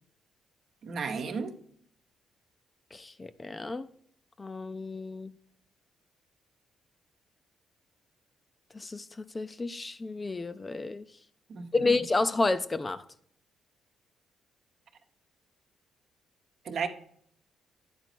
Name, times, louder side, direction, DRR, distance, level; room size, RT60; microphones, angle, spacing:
voice 1, 0.8-1.5 11.5-11.9 16.6-16.9, right 5 dB, 60° right, 0.9 m, -33 dB
voice 2, 2.9-3.9 4.4-5.3 8.7-9.1 9.3-11.0 11.7-13.0, left 3 dB, 25° left, 0.4 m, -30 dB
9.7 x 4.0 x 4.5 m
cardioid pair, 90°, 0 cm